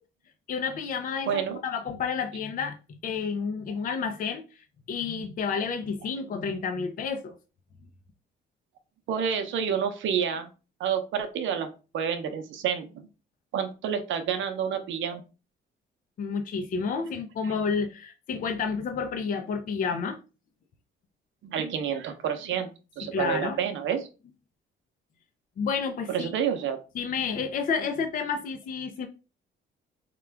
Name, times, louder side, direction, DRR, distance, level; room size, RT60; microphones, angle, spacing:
voice 1, 0.5-7.4 16.2-20.2 23.1-23.6 25.6-26.3 26.9-29.1, left 5 dB, 45° left, 0.5 m, -30 dB
voice 2, 1.3-1.6 9.1-10.5 10.8-11.7 11.9-13.1 13.5-15.2 17.4-17.5 21.4-22.7 23.0-24.1 26.1-26.8, right 8 dB, 75° right, 0.7 m, -29 dB
3.6 x 2.2 x 3.3 m
cardioid pair, 90°, 20 cm